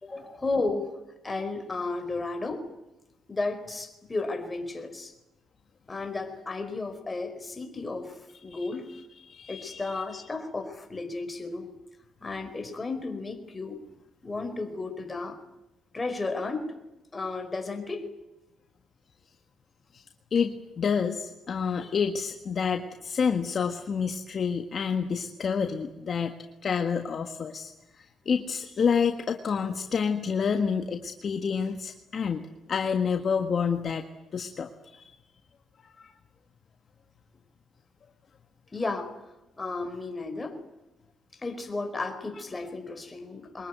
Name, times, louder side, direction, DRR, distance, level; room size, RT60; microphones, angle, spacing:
voice 1, 0.0-0.9 1.2-2.7 3.3-5.1 5.9-8.9 9.5-11.7 12.2-13.8 14.2-15.4 15.9-16.7 17.1-18.1 38.7-39.1 39.6-40.6 41.4-43.7, left 3 dB, 25° left, 6 dB, 4.7 m, -33 dB
voice 2, 9.3-10.0 19.9-20.0 20.3-26.3 26.6-34.0 34.3-35.1 36.0-36.1, left 6 dB, 50° left, 5 dB, 1.6 m, -28 dB
23.5 x 21.0 x 9.4 m, 1.0 s
cardioid pair, 90°, 0 cm